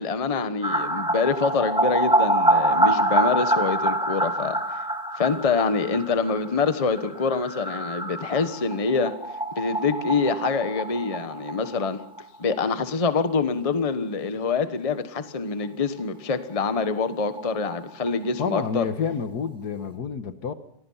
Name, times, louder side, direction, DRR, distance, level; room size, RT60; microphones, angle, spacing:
voice 1, 0.0-4.8 5.2-9.1 9.6-12.0 12.4-18.9, left 4 dB, 25° left, 10 dB, 1.1 m, -25 dB
sound 1, 0.6-12.2 12.5-12.6 12.9-13.0 16.0-16.1 16.3-16.4 16.7-18.4 18.8-18.9, right 1 dB, 5° right, 2.4 m, -26 dB
voice 2, 18.4-20.5, left 6 dB, 65° left, 10 dB, 1.8 m, -28 dB
26.5 x 19.5 x 5.7 m, 0.70 s
omnidirectional pair, 1.9 m